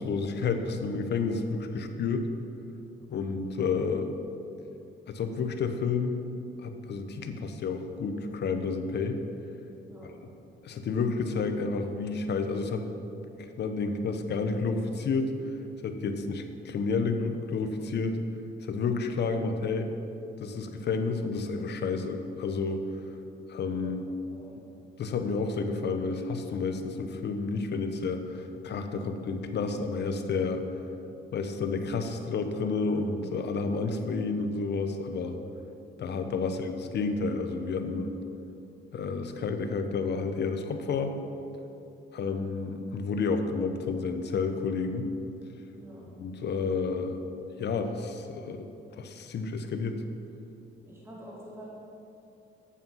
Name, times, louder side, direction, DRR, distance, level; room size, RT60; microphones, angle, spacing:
voice 1, 0.0-2.3 3.1-4.2 5.1-6.3 6.6-9.2 10.6-12.9 13.4-15.3 15.8-18.2 18.6-19.9 20.4-22.8 23.5-24.1 25.0-30.7 31.3-35.4 36.0-38.2 38.9-41.2 42.1-45.1 46.2-47.2 47.6-50.0, left 4 dB, 60° left, 7 dB, 0.9 m, -30 dB
voice 2, 24.3-24.6 45.7-46.1 50.9-51.6, equal, 10° right, -6 dB, 2.4 m, -48 dB
8.7 x 7.2 x 5.5 m, 2.7 s
cardioid pair, 90°, 20 cm